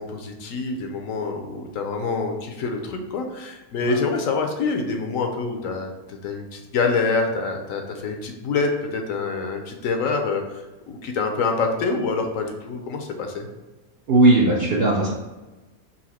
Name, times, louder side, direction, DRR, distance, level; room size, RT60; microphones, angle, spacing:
voice 1, 0.0-5.9 6.2-13.5, left 4 dB, 70° left, 4 dB, 0.9 m, -26 dB
voice 2, 14.1-15.1, right 2 dB, 60° right, -2 dB, 0.6 m, -17 dB
4.1 x 2.5 x 4.1 m, 1.1 s
omnidirectional pair, 1.5 m